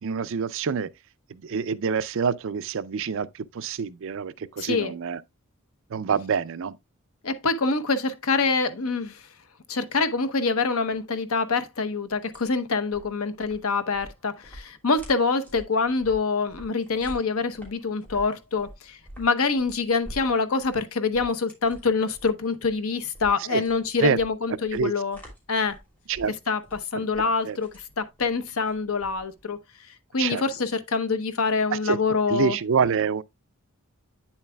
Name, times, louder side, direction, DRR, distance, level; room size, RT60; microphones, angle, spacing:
voice 1, 0.0-0.9 1.3-5.2 5.9-6.8 23.5-23.6 24.0-24.2 24.7-24.9 26.1-26.3 27.0-27.1 27.4-27.6 30.2-30.4 31.7-32.0 32.3-33.2, right 6 dB, 65° right, 0.5 m, -26 dB
voice 2, 4.6-4.9 7.2-9.3 9.7-25.2 25.5-25.8 26.5-29.6 30.1-32.6, left 4 dB, 70° left, 0.9 m, -25 dB
sound 1, 12.1-29.5, equal, 10° left, 3.0 m, -47 dB
8.9 x 7.2 x 2.2 m
head